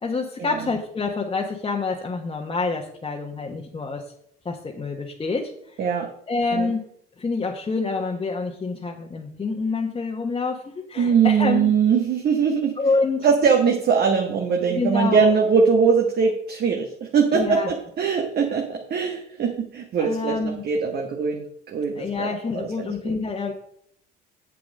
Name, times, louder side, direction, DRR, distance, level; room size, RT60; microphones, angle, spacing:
voice 1, 0.0-4.0 4.4-5.8 6.3-6.8 7.2-11.7 12.8-13.3 14.7-15.3 17.3-17.7 20.0-20.6 21.9-23.5, left 4 dB, 25° left, -1 dB, 1.3 m, -27 dB
voice 2, 5.8-6.1 6.5-6.7 11.0-12.8 13.2-23.1, right 6 dB, 55° right, 2 dB, 1.5 m, -21 dB
7.6 x 7.3 x 5.4 m, 0.67 s
supercardioid pair, 75°, 20 cm